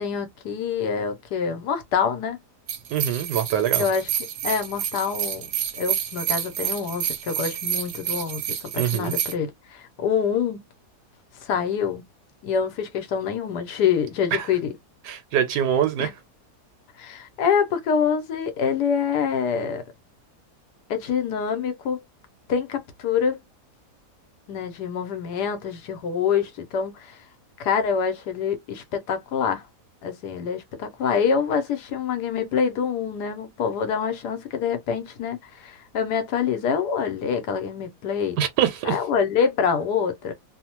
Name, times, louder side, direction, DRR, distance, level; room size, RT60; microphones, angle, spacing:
voice 1, 0.0-2.4 3.8-4.1 4.4-5.5 5.8-8.4 8.7-10.6 11.4-12.0 12.4-14.7 16.0-16.1 17.0-19.8 20.9-22.0 22.5-23.4 24.5-27.2 27.6-29.6 30.0-38.4 38.8-40.3, left 6 dB, 85° left, 1.3 m, -26 dB
sound 1, 2.7-9.3, right 10 dB, 65° right, 0.8 m, -29 dB
voice 2, 2.9-3.8 8.7-9.1 14.3-14.5 15.1-16.1 38.4-39.0, right 9 dB, 85° right, 1.2 m, -24 dB
3.1 x 2.1 x 2.9 m
omnidirectional pair, 1.7 m